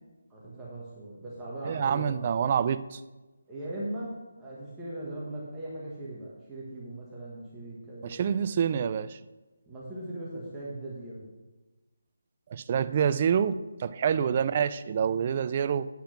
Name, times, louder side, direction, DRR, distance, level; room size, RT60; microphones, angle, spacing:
voice 1, 0.3-2.3 3.5-4.1 4.4-8.2 9.7-11.3 14.1-14.4, right 1 dB, 10° right, -7 dB, 1.4 m, -39 dB
voice 2, 1.7-3.0 8.0-9.2 12.5-15.9, right 7 dB, 30° right, 13 dB, 0.3 m, -27 dB
8.6 x 5.8 x 5.8 m, 1.1 s
hypercardioid pair, 170°, 0 cm